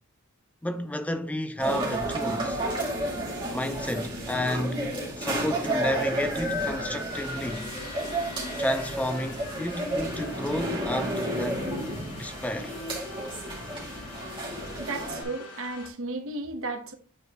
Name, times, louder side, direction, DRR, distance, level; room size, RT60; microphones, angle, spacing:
voice 1, 0.6-2.6 3.5-7.7 8.6-11.7 12.2-12.7, left 1 dB, 5° left, 0.4 m, -31 dB
sound 1, 1.6-15.2, right 1 dB, 20° right, 2.4 m, -31 dB
sound 2, 7.1-15.9, left 5 dB, 85° left, 2.0 m, -45 dB
voice 2, 14.8-16.9, right 2 dB, 60° right, 1.2 m, -34 dB
9.2 x 4.7 x 3.1 m
head